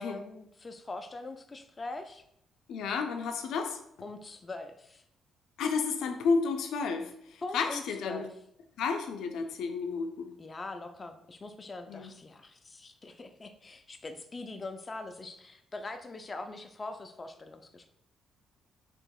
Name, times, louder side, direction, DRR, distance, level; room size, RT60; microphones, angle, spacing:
voice 1, 0.0-2.2 4.0-5.0 7.4-8.3 10.4-17.9, left 2 dB, 30° left, 6 dB, 0.4 m, -42 dB
voice 2, 2.7-3.8 5.6-8.3 8.8-10.3 11.9-12.1, left 5 dB, 80° left, 5 dB, 0.5 m, -31 dB
6.3 x 2.9 x 2.3 m, 0.75 s
cardioid pair, 90°, 0 cm